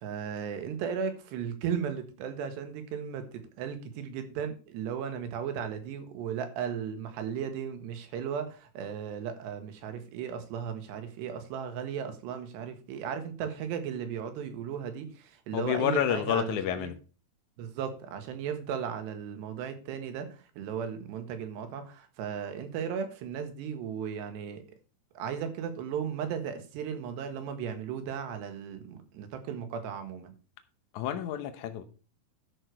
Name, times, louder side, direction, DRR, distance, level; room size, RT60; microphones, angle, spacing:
voice 1, 0.0-16.9 17.6-24.6 25.2-30.3, right 7 dB, 90° right, 3.6 m, -36 dB
voice 2, 15.5-17.0 30.9-31.8, left 10 dB, 75° left, 1.7 m, -29 dB
12.0 x 6.4 x 4.6 m
omnidirectional pair, 4.8 m